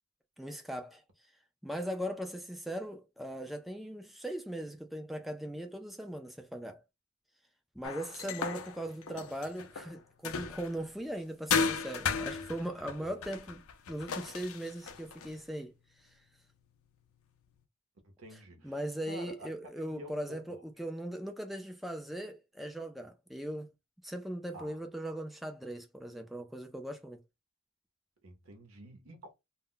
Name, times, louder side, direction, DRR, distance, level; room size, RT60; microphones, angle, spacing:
voice 1, 0.4-1.0 1.6-6.8 7.8-16.1 18.6-23.7 24.0-27.2, right 1 dB, ahead, 0.3 m, -39 dB
sound 1, 7.8-10.9 11.5-15.4, left 5 dB, 85° left, 0.5 m, -35 dB
voice 2, 8.2-8.6 9.0-9.3 13.0-13.1 18.0-20.6 24.5-24.8 28.2-29.3, right 1 dB, 80° right, 0.8 m, -49 dB
2.2 x 2.1 x 3.7 m
head